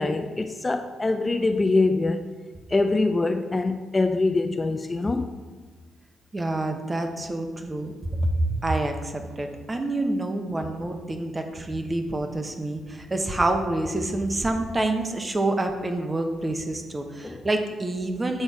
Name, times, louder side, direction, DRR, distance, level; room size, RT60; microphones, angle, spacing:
voice 1, 0.0-2.2 2.7-5.4 17.2-17.5, left 3 dB, 25° left, 0.5 m, -24 dB
voice 2, 6.3-7.9 8.2-18.4, right 2 dB, 25° right, 1.0 m, -27 dB
7.7 x 3.9 x 4.9 m
hypercardioid pair, 45°, 0 cm